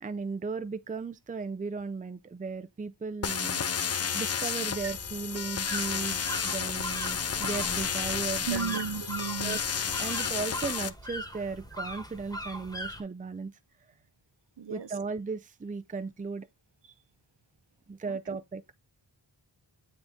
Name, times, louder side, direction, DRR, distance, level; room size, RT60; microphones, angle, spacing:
voice 1, 0.0-3.6 3.9-8.8 9.4-9.6 10.0-13.5 14.7-16.5 17.9-18.6, right 4 dB, 20° right, 0.5 m, -36 dB
sound 1, 3.2-10.9, left 7 dB, 35° left, 0.4 m, -32 dB
sound 2, 4.6-13.0, equal, 10° left, 1.2 m, -40 dB
voice 2, 8.5-9.6 14.6-14.9, right 7 dB, 70° right, 0.8 m, -34 dB
7.8 x 3.8 x 3.5 m
wide cardioid pair, 60°, 44 cm